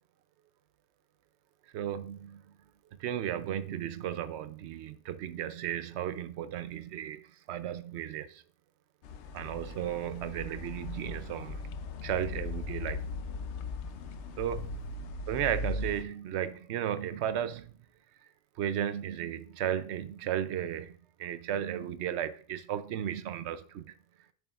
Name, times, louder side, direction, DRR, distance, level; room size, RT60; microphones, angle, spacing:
voice 1, 1.7-2.4 3.0-8.4 9.3-11.6 12.0-13.1 14.4-14.8 15.3-17.7 18.6-23.9, right 10 dB, 70° right, 0.9 m, -34 dB
sound 1, 9.0-16.0, left 3 dB, 75° left, 0.9 m, -38 dB
8.2 x 7.2 x 2.4 m
omnidirectional pair, 1.2 m